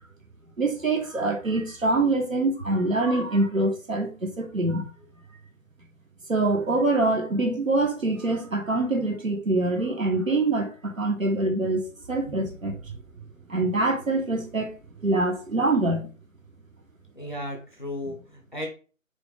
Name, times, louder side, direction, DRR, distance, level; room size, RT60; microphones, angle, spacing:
voice 1, 0.6-4.9 6.3-12.9 13.5-14.7 15.0-16.1, right 2 dB, 75° right, 1.3 m, -25 dB
voice 2, 17.2-18.7, left 1 dB, 35° left, 0.7 m, -35 dB
4.9 x 2.4 x 3.4 m
figure-of-eight pair, 160°, 40 cm